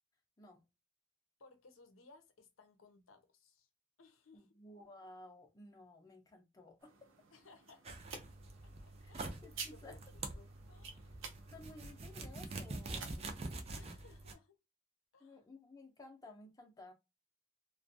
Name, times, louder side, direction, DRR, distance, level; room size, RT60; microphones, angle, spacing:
voice 1, 1.4-3.7 4.0-4.5 7.3-8.0 8.6-9.4 9.7-11.1 13.8-14.6 15.1-15.4, left 3 dB, 80° left, 0.7 m, -63 dB
voice 2, 4.3-6.9 9.0-9.1 9.4-10.0 11.5-13.3 15.2-16.9, left 2 dB, 20° left, 0.6 m, -55 dB
sound 1, 6.8-13.6, right 5 dB, 70° right, 0.6 m, -52 dB
sound 2, 7.8-14.3, right 2 dB, 30° right, 0.4 m, -46 dB
2.4 x 2.2 x 2.6 m
head